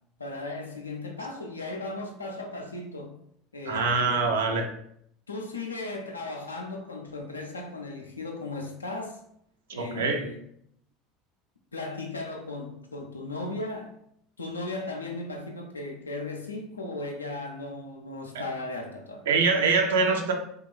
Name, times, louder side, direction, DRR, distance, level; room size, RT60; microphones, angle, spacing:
voice 1, 0.2-3.2 3.5-4.3 5.3-9.2 9.7-10.4 11.7-13.9 14.4-19.3, left 2 dB, 80° left, 0.4 m, -36 dB
voice 2, 3.7-4.7 9.7-10.2 19.3-20.3, right 4 dB, 70° right, 0.4 m, -24 dB
2.9 x 2.2 x 2.2 m
figure-of-eight pair, 70°, 0 cm